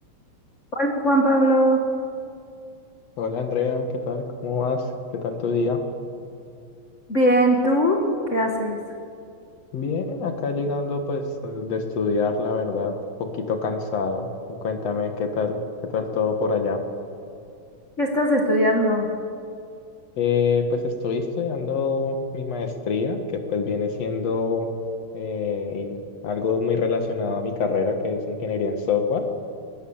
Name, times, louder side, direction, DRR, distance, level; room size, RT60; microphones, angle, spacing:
voice 1, 0.7-1.8 7.1-8.0 8.3-8.8 18.0-19.1, equal, 30° left, 0 dB, 1.3 m, -20 dB
voice 2, 3.2-4.9 5.1-5.8 9.7-14.3 14.6-15.6 15.9-16.8 20.2-24.7 25.1-26.0 26.2-29.3, left 4 dB, 50° left, 6 dB, 2.6 m, -25 dB
23.0 x 19.5 x 7.4 m, 2.5 s
omnidirectional pair, 4.1 m